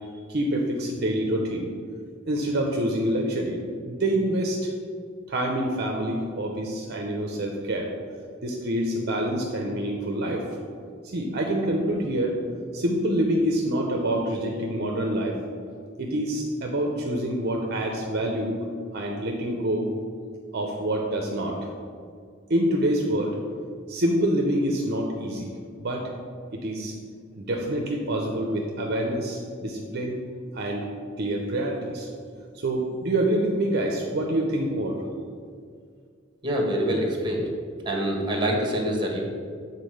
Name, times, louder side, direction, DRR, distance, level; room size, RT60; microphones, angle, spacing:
voice 1, 0.3-1.7 2.3-3.6 3.9-4.7 5.3-7.9 8.4-10.6 11.0-12.4 12.7-15.4 16.0-18.5 18.9-19.9 20.5-21.6 22.5-23.4 23.9-25.5 25.8-26.1 26.5-26.9 27.3-30.2 30.5-30.9 31.2-32.1 32.5-35.0, right 1 dB, 55° right, 1 dB, 0.7 m, -26 dB
voice 2, 36.4-37.4 37.8-39.2, equal, 25° right, 1 dB, 1.4 m, -25 dB
7.4 x 4.0 x 6.4 m, 2.1 s
head